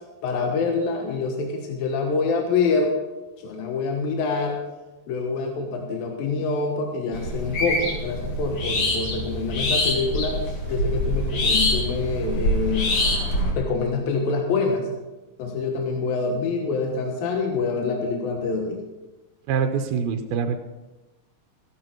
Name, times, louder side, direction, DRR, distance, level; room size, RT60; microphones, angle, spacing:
voice 1, 0.2-2.9 3.4-4.6 5.1-10.4 10.7-12.9 13.6-14.9 15.4-18.8, left 4 dB, 75° left, 2 dB, 3.1 m, -26 dB
sound 1, 7.1-13.5, left 1 dB, 45° left, 2.7 m, -25 dB
voice 2, 19.5-20.6, right 6 dB, 85° right, 6 dB, 2.7 m, -24 dB
15.5 x 11.0 x 4.6 m, 1.1 s
omnidirectional pair, 4.2 m